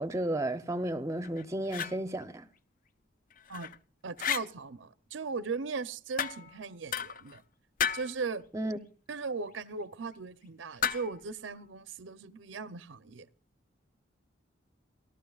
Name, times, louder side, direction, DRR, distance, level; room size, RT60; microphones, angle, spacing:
voice 1, 0.0-2.5 8.5-8.8, right 1 dB, 15° right, 0.6 m, -33 dB
sound 1, 1.2-2.0 3.3-3.8 4.2-4.5 6.2-6.6 6.9-7.4 7.8-8.2 10.8-11.2, left 8 dB, 45° left, 0.5 m, -33 dB
voice 2, 4.0-7.4 7.9-8.4 9.1-13.3, right 4 dB, 70° right, 0.7 m, -38 dB
28.0 x 12.0 x 2.4 m
head